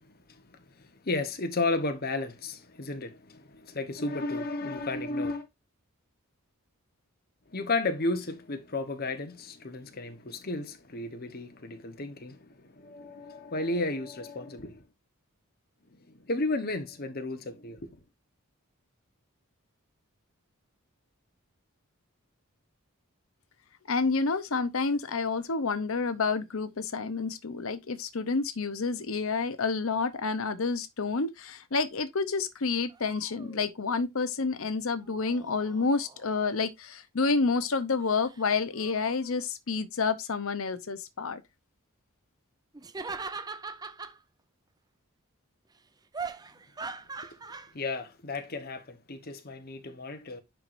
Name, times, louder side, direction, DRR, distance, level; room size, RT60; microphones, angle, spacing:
voice 1, 0.0-5.5 7.5-14.8 15.9-18.0 47.7-50.4, left 2 dB, 45° left, 1.1 m, -33 dB
voice 2, 23.9-41.4, left 4 dB, 65° left, 0.8 m, -29 dB
sound 1, 32.9-33.7 35.0-36.7 38.0-38.4 38.7-39.4 42.7-44.2 46.1-47.7, right 4 dB, 15° right, 0.5 m, -41 dB
10.5 x 4.6 x 2.6 m
head